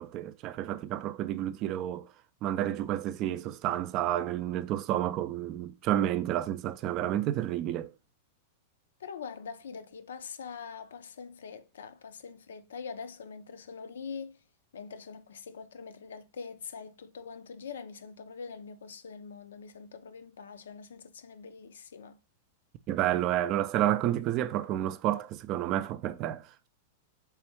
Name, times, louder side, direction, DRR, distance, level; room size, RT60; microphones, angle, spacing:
voice 1, 0.0-2.1 2.4-7.9 22.9-26.7, right 12 dB, 40° right, 0.3 m, -30 dB
voice 2, 9.0-14.4 14.7-22.2, left 5 dB, 80° left, 0.4 m, -43 dB
3.4 x 3.2 x 3.0 m
hypercardioid pair, 110°, 0 cm